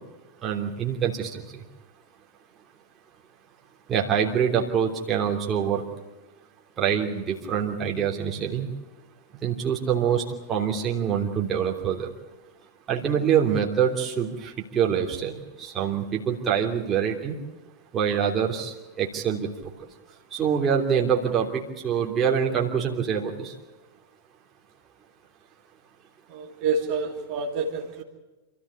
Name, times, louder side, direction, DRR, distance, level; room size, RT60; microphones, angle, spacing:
voice 1, 0.4-1.4 3.9-5.8 6.8-8.7 9.4-10.2 10.5-12.1 12.9-17.3 17.9-19.5 20.3-23.5, right 8 dB, 25° right, -1 dB, 3.1 m, -25 dB
voice 2, 26.3-28.0, right 4 dB, 45° right, 0 dB, 2.9 m, -28 dB
27.5 x 14.5 x 8.4 m, 1.2 s
figure-of-eight pair, 90°, 0 cm